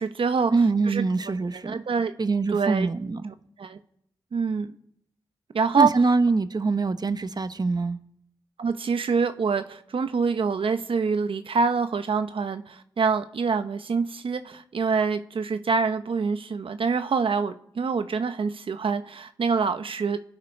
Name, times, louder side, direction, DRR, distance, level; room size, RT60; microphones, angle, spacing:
voice 1, 0.0-0.5 0.8-1.0 1.5-2.1 2.5-2.9 3.6-3.8 4.3-4.7 5.5-5.9 8.6-20.2, right 5 dB, 70° right, 1.1 m, -25 dB
voice 2, 0.5-1.8 2.2-3.3 5.8-8.0, right 3 dB, 45° right, 1.2 m, -24 dB
26.5 x 9.4 x 5.4 m
cardioid pair, 45°, 9 cm